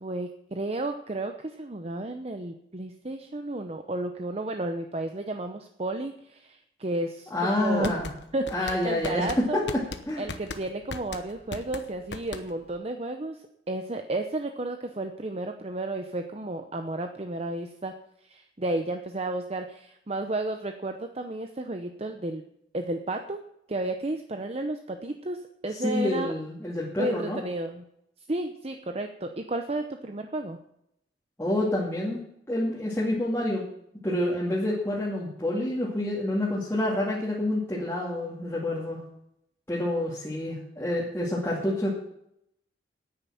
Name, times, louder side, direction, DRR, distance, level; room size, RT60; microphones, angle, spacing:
voice 1, 0.0-8.0 8.3-9.6 10.2-13.4 13.7-17.9 18.2-22.4 22.7-23.4 23.7-26.3 27.0-27.8 28.3-30.6, right 2 dB, 35° right, 6 dB, 0.8 m, -32 dB
voice 2, 7.3-8.1 8.5-9.6 10.1-10.3 25.8-27.4 31.4-32.2 32.5-33.6 34.0-39.0 39.7-41.9, left 1 dB, 15° left, -6 dB, 2.4 m, -28 dB
sound 1, 7.6-12.8, left 3 dB, 85° left, 1.1 m, -38 dB
10.5 x 9.1 x 8.6 m, 0.77 s
head